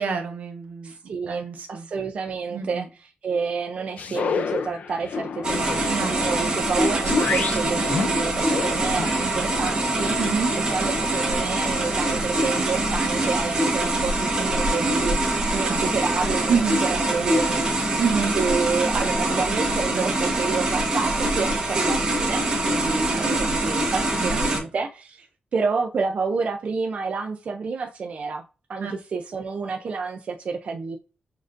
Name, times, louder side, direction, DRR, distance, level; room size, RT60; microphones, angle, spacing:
voice 1, 0.0-0.9 1.3-1.9 2.5-2.8 5.9-6.2 10.2-10.5 15.5-15.8 16.5-16.8 18.0-18.4 23.1-23.4 24.3-24.4 28.8-28.9, right 6 dB, 75° right, 0.9 m, -27 dB
voice 2, 0.8-10.5 10.7-18.0 18.3-28.4 28.7-31.0, right 4 dB, 50° right, 0.3 m, -29 dB
sound 1, 4.0-10.3, left 6 dB, 60° left, 0.4 m, -30 dB
sound 2, 5.4-24.6, right 2 dB, 30° right, 1.0 m, -24 dB
6.4 x 2.5 x 2.4 m
wide cardioid pair, 175°, 3 cm